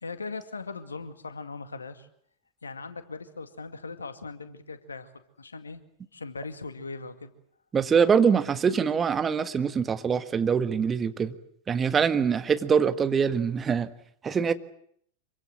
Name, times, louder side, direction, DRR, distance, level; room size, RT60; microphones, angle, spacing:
voice 1, 0.0-2.1 2.6-5.1 5.4-5.8 6.1-7.3, left 4 dB, 75° left, 2.1 m, -39 dB
voice 2, 7.7-11.3 11.7-13.9 14.2-14.5, right 6 dB, 20° right, 1.6 m, -24 dB
26.5 x 24.5 x 7.7 m
figure-of-eight pair, 90°, 0 cm